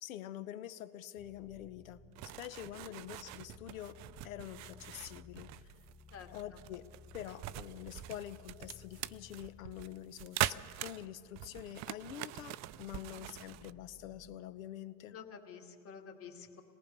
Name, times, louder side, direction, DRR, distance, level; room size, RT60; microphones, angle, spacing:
voice 1, 0.0-4.0 4.2-5.5 6.3-6.8 7.1-15.2, left 12 dB, 80° left, 13 dB, 1.1 m, -46 dB
sound 1, 1.2-14.4, left 5 dB, 5° left, 0.8 m, -59 dB
sound 2, 2.2-13.7, right 16 dB, 45° right, 0.5 m, -43 dB
voice 2, 6.1-6.6 15.1-16.6, left 6 dB, 35° left, 4 dB, 2.5 m, -50 dB
26.5 x 18.5 x 5.4 m, 2.5 s
hypercardioid pair, 100°, 40 cm